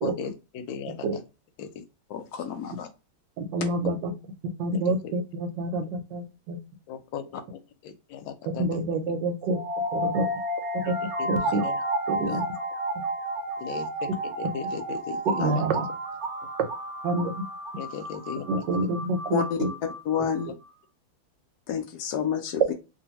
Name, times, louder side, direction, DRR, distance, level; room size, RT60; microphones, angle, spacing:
voice 1, 0.0-1.2 1.6-1.8 3.6-3.7 4.9-5.1 6.9-8.8 10.9-11.0 11.2-11.8 12.3-12.4 13.6-15.6 17.8-18.6, left 8 dB, 90° left, 8 dB, 1.4 m, -37 dB
voice 2, 2.1-2.9 12.3-12.4 15.4-15.6 19.3-19.6 20.1-20.5 21.7-22.7, left 7 dB, 75° left, 6 dB, 0.9 m, -29 dB
voice 3, 3.4-4.1 4.6-6.6 8.6-9.6 9.9-10.3 10.7-10.9 11.3-11.6 12.1-12.4 15.4-15.9 17.0-17.3 18.5-19.7, right 2 dB, 75° right, 7 dB, 1.3 m, -27 dB
sound 1, 9.5-20.5, right 1 dB, 55° right, 0.8 m, -32 dB
2.9 x 2.7 x 2.8 m, 0.28 s
omnidirectional pair, 2.1 m